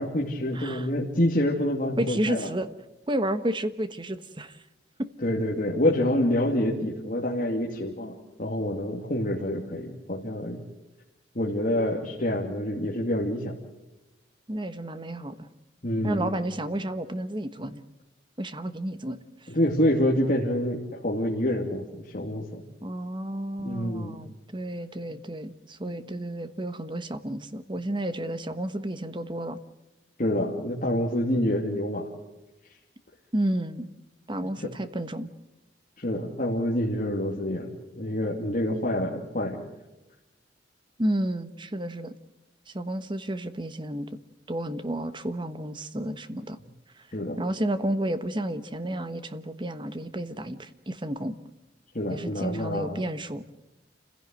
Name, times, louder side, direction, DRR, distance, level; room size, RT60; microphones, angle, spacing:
voice 1, 0.0-2.5 5.2-10.6 11.3-13.5 15.8-16.3 19.5-22.6 23.6-24.2 30.2-32.1 34.4-34.5 36.0-37.7 37.9-39.6 47.1-47.4 51.9-53.0, left 1 dB, 45° left, -3 dB, 2.6 m, -27 dB
voice 2, 0.5-0.9 2.0-2.7 3.1-4.6 5.0-5.1 14.5-15.5 16.0-17.8 18.4-19.5 22.8-29.6 33.3-33.9 34.3-35.3 38.7-38.8 41.0-42.1 42.7-44.1 44.5-46.6 47.0-47.1 47.4-51.4 52.1-53.4, right 1 dB, 25° right, 11 dB, 1.2 m, -31 dB
28.0 x 16.0 x 7.8 m, 1.0 s
head